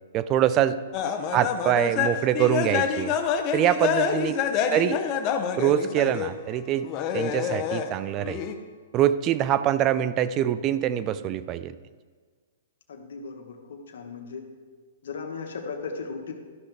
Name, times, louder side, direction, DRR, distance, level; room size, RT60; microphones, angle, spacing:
voice 1, 0.1-0.8 1.3-3.2 3.5-4.4 4.7-5.0 5.6-6.9 7.1-8.4 8.9-11.7, right 11 dB, 30° right, 14 dB, 0.3 m, -24 dB
sound 1, 0.9-6.3 6.8-7.9 8.2-8.5, left 7 dB, 35° left, 0.6 m, -27 dB
voice 2, 12.9-14.5 15.0-16.3, left 4 dB, 70° left, 2 dB, 1.1 m, -37 dB
12.0 x 5.8 x 3.3 m, 1.5 s
hypercardioid pair, 145°, 0 cm